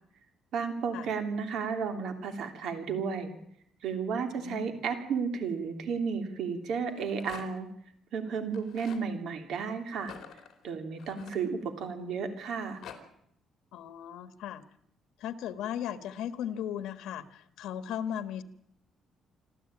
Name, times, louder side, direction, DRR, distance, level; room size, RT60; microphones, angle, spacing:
voice 1, 0.5-3.4 3.8-7.7 8.1-10.1 10.6-12.8, right 5 dB, 65° right, 7 dB, 2.9 m, -33 dB
voice 2, 4.3-4.8 13.7-14.6 15.2-18.4, left 10 dB, 85° left, 11 dB, 1.3 m, -37 dB
Rattle, 6.8-7.7 8.5-9.1 10.0-11.9 12.5-13.0, left 8 dB, 55° left, 3.1 m, -48 dB
27.0 x 13.0 x 8.8 m, 0.72 s
cardioid pair, 165°, 0 cm